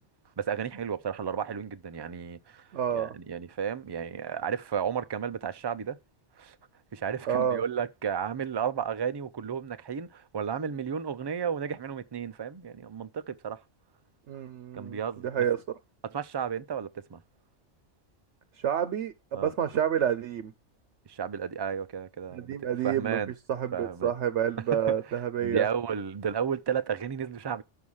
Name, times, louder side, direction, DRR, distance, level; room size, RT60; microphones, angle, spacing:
voice 1, 0.4-2.6 2.9-6.0 6.4-6.6 6.9-13.6 14.7-15.3 16.0-17.2 19.3-19.5 21.1-22.5 22.8-23.3 23.7-24.1 24.9-25.0 25.4-27.6, right 7 dB, 45° right, 0.3 m, -33 dB
voice 2, 2.7-3.1 7.3-7.6 14.3-15.0 15.2-15.6 18.6-20.5 22.3-23.2 23.5-25.7, right 9 dB, 75° right, 1.0 m, -28 dB
6.3 x 5.5 x 7.1 m
omnidirectional pair, 1.2 m